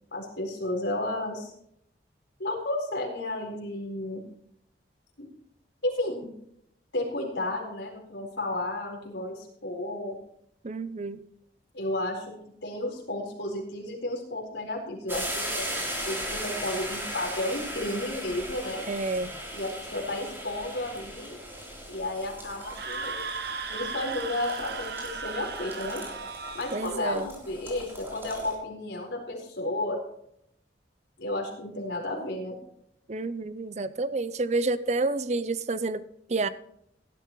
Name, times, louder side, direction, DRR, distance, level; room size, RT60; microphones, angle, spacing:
voice 1, 0.1-1.5 2.4-4.2 5.2-5.3 5.8-6.3 6.9-10.2 11.7-12.4 12.6-18.8 19.5-21.4 21.9-23.2 23.7-26.0 26.5-30.0 31.2-32.6, left 1 dB, 80° left, 0 dB, 4.4 m, -32 dB
voice 2, 10.6-11.2 18.9-19.3 26.7-27.3 33.1-36.5, right 3 dB, 40° right, 15 dB, 0.6 m, -29 dB
sound 1, 15.1-28.5, equal, 15° right, 3.5 m, -38 dB
Screaming, 22.6-27.0, right 5 dB, 60° right, 1.0 m, -36 dB
17.5 x 12.0 x 3.1 m, 0.72 s
head